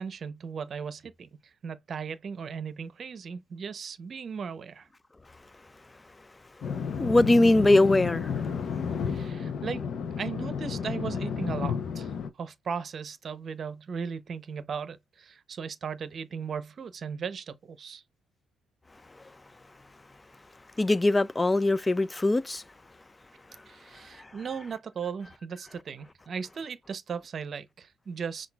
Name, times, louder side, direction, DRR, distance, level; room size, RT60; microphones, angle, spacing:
voice 1, 0.0-4.9 9.0-9.8 10.2-18.0 23.7-28.5, right 6 dB, 50° right, 0.7 m, -37 dB
sound 1, 6.6-12.3, left 6 dB, 65° left, 0.6 m, -32 dB
voice 2, 7.0-8.3 20.8-22.6, left 2 dB, 20° left, 0.3 m, -21 dB
5.8 x 2.4 x 2.3 m
cardioid pair, 90°, 0 cm